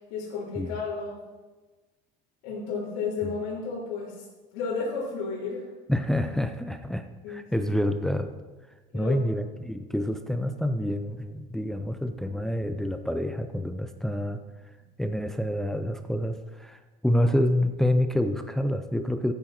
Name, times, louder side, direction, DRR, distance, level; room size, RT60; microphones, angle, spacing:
voice 1, 0.1-1.2 2.4-4.2 4.5-5.7 7.2-7.7 8.9-9.5, left 4 dB, 85° left, -8 dB, 3.6 m, -33 dB
voice 2, 5.9-8.3 8.9-14.4 15.0-19.3, left 1 dB, ahead, 8 dB, 0.6 m, -27 dB
15.0 x 8.8 x 4.3 m, 1.2 s
cardioid pair, 135°, 17 cm